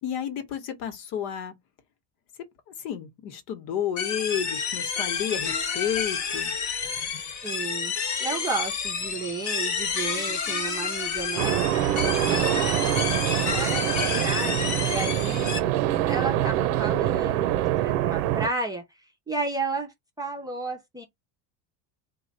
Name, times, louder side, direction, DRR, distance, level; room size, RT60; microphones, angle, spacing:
voice 1, 0.0-1.6 2.8-6.5, left 9 dB, 65° left, 1.2 m, -31 dB
sound 1, 4.0-15.6, left 6 dB, 40° left, 1.0 m, -30 dB
voice 2, 7.4-7.9 8.2-11.5 12.1-13.0 13.4-15.5 16.1-18.8 19.3-21.0, right 3 dB, 10° right, 0.6 m, -33 dB
sound 2, 11.4-18.5, right 13 dB, 80° right, 0.6 m, -25 dB
3.1 x 2.3 x 4.0 m
supercardioid pair, 135°, 45 cm